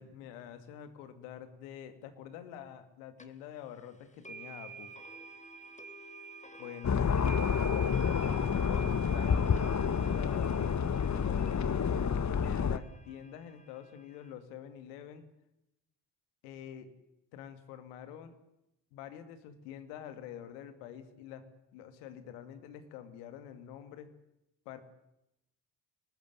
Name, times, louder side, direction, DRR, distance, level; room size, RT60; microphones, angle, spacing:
voice 1, 0.0-4.9 6.6-11.9 12.4-15.3 16.4-16.9 17.3-18.4 18.9-21.4 21.7-24.1 24.7-24.8, left 9 dB, 80° left, 10 dB, 2.4 m, -47 dB
sound 1, 3.2-3.3 4.2-14.3, right 4 dB, 15° left, 3.6 m, -49 dB
sound 2, 6.8-12.8, left 6 dB, 35° left, 1.4 m, -29 dB
23.5 x 20.0 x 8.2 m, 0.85 s
hypercardioid pair, 40°, 47 cm